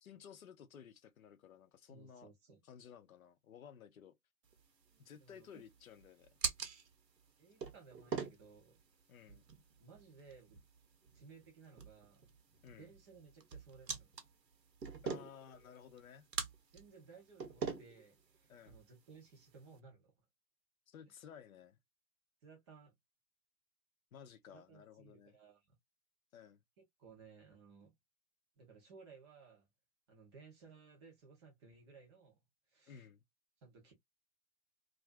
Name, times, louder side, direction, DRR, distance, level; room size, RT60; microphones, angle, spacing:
voice 1, 0.0-2.3 2.6-4.1 5.0-6.3 9.1-9.4 12.6-12.9 15.0-16.3 18.5-18.8 20.9-21.8 24.1-25.4 26.3-26.6 32.9-33.2, left 8 dB, 60° left, 0.6 m, -56 dB
voice 2, 1.9-2.6 5.2-5.5 7.4-8.8 9.3-9.4 9.8-10.6 11.1-12.3 12.8-14.1 16.7-20.2 22.4-22.9 24.5-25.7 26.8-27.9 28.6-29.7 30.1-32.4 32.7-33.1 33.6-33.9, right 5 dB, 20° right, 0.5 m, -59 dB
sound 1, 4.4-19.8, right 5 dB, 80° right, 0.8 m, -46 dB
2.4 x 2.4 x 2.3 m
figure-of-eight pair, 105°, 50 cm